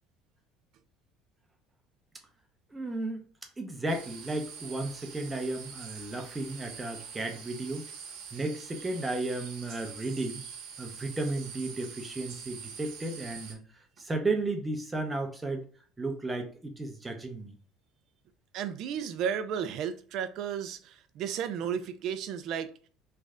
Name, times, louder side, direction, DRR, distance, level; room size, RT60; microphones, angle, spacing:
voice 1, 2.7-3.2 3.6-7.8 8.3-10.4 10.8-13.6 14.0-15.6 16.0-17.5, right 2 dB, 10° right, 4 dB, 0.6 m, -34 dB
sound 1, 3.9-13.5, right 6 dB, 65° right, 0.9 m, -45 dB
voice 2, 18.5-22.7, right 8 dB, 50° right, 10 dB, 0.4 m, -33 dB
3.2 x 2.5 x 3.5 m, 0.41 s
cardioid pair, 155°, 0 cm